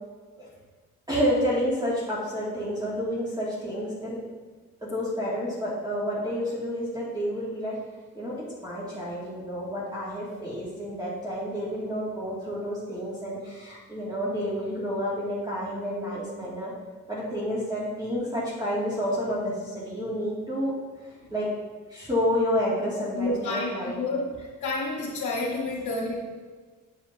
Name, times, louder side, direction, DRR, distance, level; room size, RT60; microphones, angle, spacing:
voice 1, 1.1-4.2 4.8-7.8 8.1-8.4 8.6-16.7 17.1-20.7 21.3-21.5 21.9-24.0, equal, 15° right, -7 dB, 2.4 m, -29 dB
voice 2, 23.2-23.7 24.0-26.1, left 2 dB, 75° left, -6 dB, 1.6 m, -29 dB
8.6 x 7.5 x 2.8 m, 1.4 s
cardioid pair, 80°, 30 cm